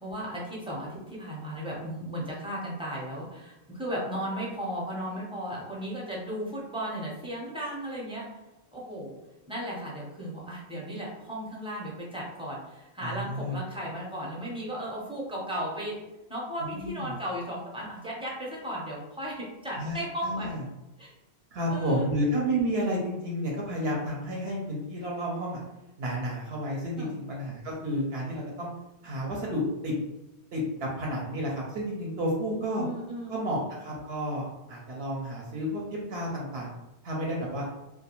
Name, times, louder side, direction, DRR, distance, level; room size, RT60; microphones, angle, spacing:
voice 1, 0.0-8.2 8.7-9.2 9.5-16.0 16.3-20.5 21.0-21.1 21.7-22.1 27.0-27.1 32.8-33.3, equal, 5° right, -5 dB, 0.5 m, -35 dB
voice 2, 13.0-13.6 16.6-17.1 19.7-20.6 21.5-25.6 26.0-28.7 29.0-29.9 30.5-32.8 33.3-36.7 37.0-37.7, equal, 70° right, -2 dB, 0.8 m, -31 dB
2.3 x 2.1 x 2.9 m, 0.98 s
omnidirectional pair, 1.1 m